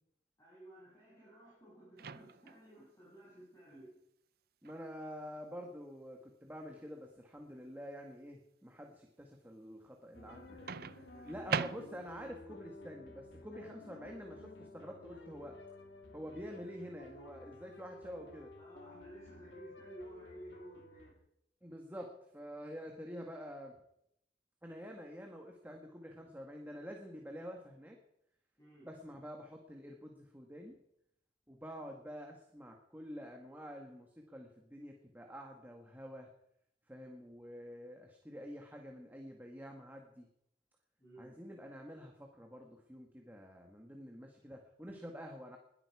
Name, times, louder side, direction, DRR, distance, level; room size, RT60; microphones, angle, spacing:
voice 1, 0.4-4.0 10.3-11.3 18.6-21.2 28.6-28.9 41.0-41.4, right 1 dB, 20° left, -8 dB, 7.1 m, -54 dB
Microwave oven, 2.0-2.7 4.6-4.9 10.7-12.3, right 6 dB, 55° right, 0.6 m, -39 dB
voice 2, 4.6-10.6 11.2-15.6 16.1-18.5 21.6-23.8 24.6-28.0 28.8-30.8 31.5-36.3 36.9-40.3 41.2-45.6, equal, 10° right, 2 dB, 1.7 m, -48 dB
sound 1, 10.1-21.1, left 2 dB, 80° left, 2.1 m, -54 dB
21.0 x 13.0 x 4.9 m, 0.77 s
head